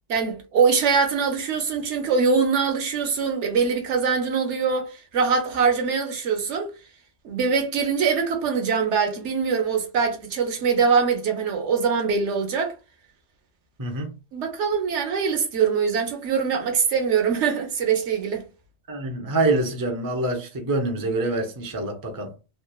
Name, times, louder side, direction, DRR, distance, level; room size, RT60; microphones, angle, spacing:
voice 1, 0.1-6.7 7.2-12.7 14.3-18.4, right 5 dB, 85° right, 1.0 m, -23 dB
voice 2, 13.8-14.1 18.9-22.3, right 2 dB, 30° right, 0.4 m, -25 dB
3.0 x 2.0 x 2.2 m
omnidirectional pair, 1.2 m